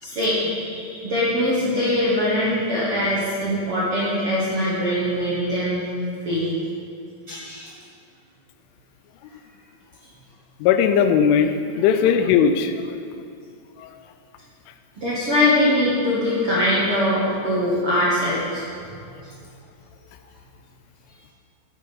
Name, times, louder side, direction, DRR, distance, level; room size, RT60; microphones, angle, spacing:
voice 1, 0.0-5.9 6.2-6.5 7.3-7.7 15.0-18.6, left 1 dB, 50° right, -8 dB, 1.7 m, -22 dB
voice 2, 10.6-13.0 13.8-13.9, left 7 dB, 85° left, 8 dB, 3.0 m, -19 dB
14.5 x 8.3 x 5.3 m, 2.3 s
omnidirectional pair, 5.6 m